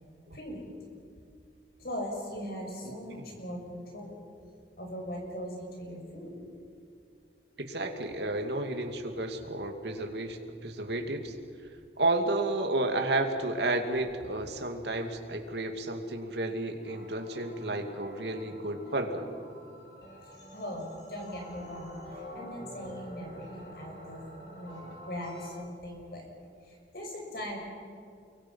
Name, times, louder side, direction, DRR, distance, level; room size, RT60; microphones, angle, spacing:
voice 1, 0.3-0.7 1.8-4.2 4.8-6.5 20.2-24.2 24.6-24.8 25.1-26.3 26.6-27.6, equal, 55° left, 0 dB, 6.5 m, -40 dB
voice 2, 7.6-11.3 12.0-19.3, right 2 dB, 70° right, 4 dB, 2.5 m, -32 dB
sound 1, 16.8-25.5, left 1 dB, 75° left, 7.8 m, -48 dB
30.0 x 23.5 x 5.8 m, 2.5 s
head